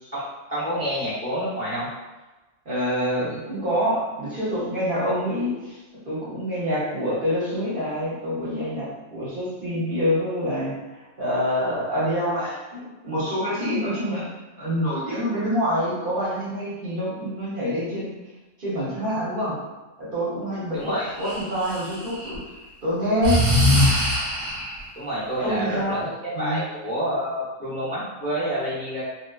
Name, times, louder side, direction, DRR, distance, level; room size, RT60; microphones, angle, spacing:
voice 1, 0.1-1.9 20.7-21.1 25.0-29.0, equal, 15° left, -10 dB, 0.4 m, -28 dB
voice 2, 2.7-5.8 6.0-14.2 14.6-18.1 18.6-19.5 20.0-22.4 22.8-23.4 25.4-26.0 26.3-26.6, equal, 50° right, -8 dB, 0.9 m, -26 dB
Breathing, 21.2-22.4 23.2-24.8, left 1 dB, 85° right, 1.2 m, -21 dB
2.7 x 2.2 x 2.2 m, 1.1 s
omnidirectional pair, 1.4 m